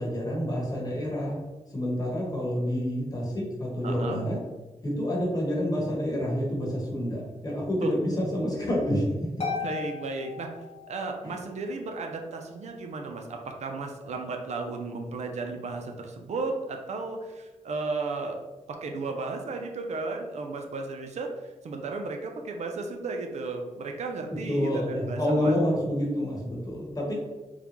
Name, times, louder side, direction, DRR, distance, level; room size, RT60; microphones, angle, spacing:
voice 1, 0.0-1.4 1.7-4.4 4.8-9.1 11.2-11.4 24.3-27.1, equal, 30° left, -3 dB, 1.0 m, -28 dB
voice 2, 3.8-4.2 7.8-7.9 9.6-10.5 10.9-18.4 18.7-25.6, right 3 dB, 70° right, 3 dB, 0.4 m, -34 dB
Harp, 9.4-11.3, left 5 dB, 55° left, 0.7 m, -35 dB
3.7 x 2.2 x 2.9 m, 1.2 s
wide cardioid pair, 120°, 12 cm